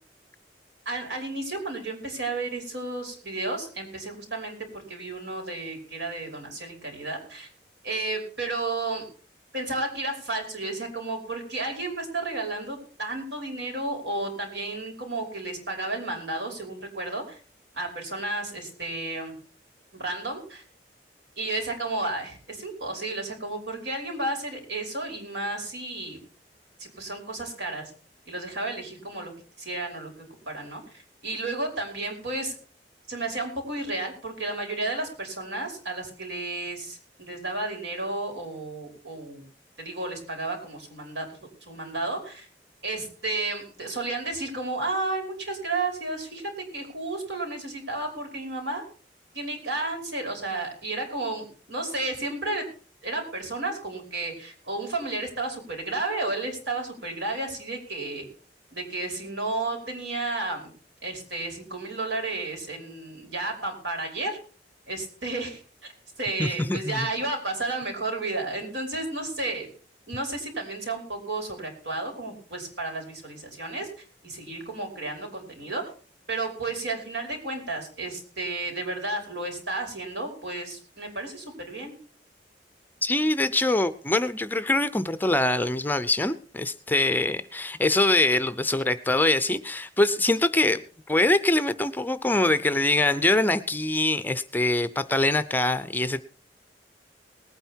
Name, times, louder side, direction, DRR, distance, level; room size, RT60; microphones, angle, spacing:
voice 1, 0.9-7.5 7.8-9.0 9.5-17.4 17.7-19.3 19.9-20.6 21.4-26.2 26.8-27.9 28.3-29.3 29.6-30.1 30.5-32.5 33.1-39.4 39.8-41.3 41.7-42.5 42.8-48.8 49.3-52.6 53.0-58.3 58.7-60.6 61.0-64.4 64.9-65.9 66.2-69.7 70.1-73.9 74.2-75.8 76.3-81.9, right 2 dB, 80° right, 1 dB, 5.3 m, -32 dB
voice 2, 66.4-67.1 83.0-96.2, left 2 dB, 10° left, 13 dB, 0.6 m, -24 dB
20.0 x 9.2 x 4.5 m, 0.40 s
head